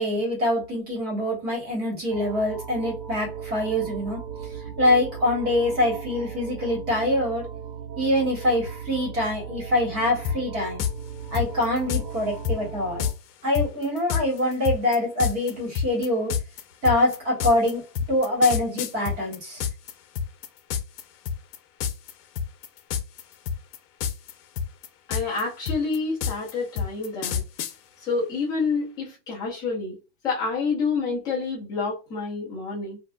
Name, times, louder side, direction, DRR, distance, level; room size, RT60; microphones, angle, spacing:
voice 1, 0.0-4.2 4.8-7.5 7.9-10.8 11.3-13.1 13.4-16.3 16.8-17.8 18.1-19.6, left 1 dB, 20° right, 1.3 m, -24 dB
sound 1, 2.1-13.1, right 7 dB, 85° right, 1.3 m, -37 dB
sound 2, 10.2-10.4 10.8-10.9 11.3-12.0 12.4-12.6 13.0-13.1 13.5-19.9 20.2-21.0 21.3-21.6 21.8-22.1 22.4-23.2 23.5-24.3 24.6-27.7, left 7 dB, 70° left, 0.8 m, -27 dB
voice 2, 25.1-27.4 28.0-30.0 30.2-33.0, left 4 dB, 10° left, 0.7 m, -28 dB
4.2 x 2.4 x 2.2 m
supercardioid pair, 175°, 49 cm